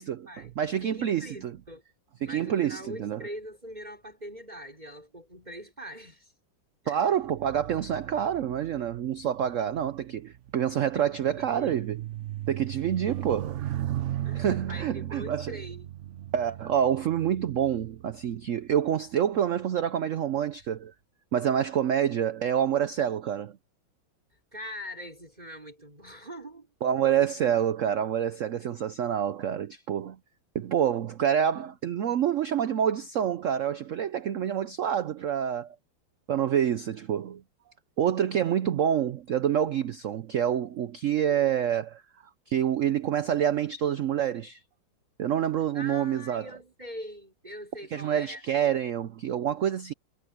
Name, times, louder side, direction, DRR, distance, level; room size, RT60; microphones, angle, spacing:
voice 1, 0.0-0.5 0.8-1.8 2.2-6.3 6.8-7.2 10.9-11.0 11.4-11.9 14.2-15.9 24.5-26.7 45.7-48.4, equal, 20° right, 4.2 m, -42 dB
voice 2, 0.6-1.5 2.2-3.2 6.9-12.0 12.5-13.6 14.3-15.6 16.3-20.9 21.3-23.6 26.8-30.2 30.5-35.7 36.3-37.4 38.0-42.0 42.5-44.6 45.2-46.5 47.9-49.9, right 9 dB, 90° right, 0.6 m, -27 dB
sound 1, 7.2-18.8 19.6-19.9, right 13 dB, 60° right, 0.8 m, -37 dB
omnidirectional pair, 2.1 m